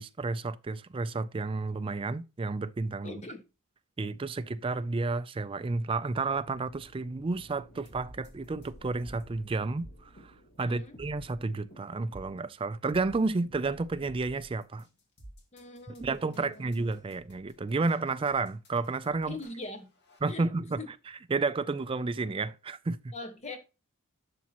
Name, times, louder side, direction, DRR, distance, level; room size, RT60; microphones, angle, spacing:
voice 1, 0.0-3.2 4.0-14.9 16.0-19.4 20.2-20.8 21.3-23.1, right 3 dB, 25° right, 0.3 m, -31 dB
voice 2, 3.0-3.4 10.6-11.0 15.5-16.7 19.2-19.9 20.3-20.4 20.8-20.9 23.1-23.6, left 3 dB, 30° left, 1.4 m, -42 dB
sound 1, 6.0-12.2, right 1 dB, 90° left, 2.2 m, -56 dB
sound 2, 7.9-20.2, equal, 50° left, 2.1 m, -53 dB
11.0 x 6.0 x 2.9 m
head